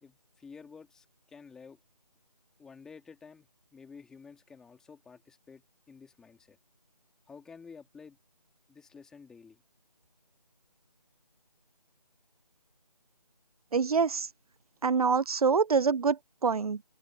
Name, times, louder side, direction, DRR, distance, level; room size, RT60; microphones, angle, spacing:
voice 1, 0.0-1.8 2.6-6.6 7.3-8.2 8.7-9.6, left 5 dB, 5° left, 2.4 m, -51 dB
voice 2, 13.7-14.3 14.8-16.8, right 5 dB, 65° right, 0.5 m, -26 dB
figure-of-eight pair, 165°, 21 cm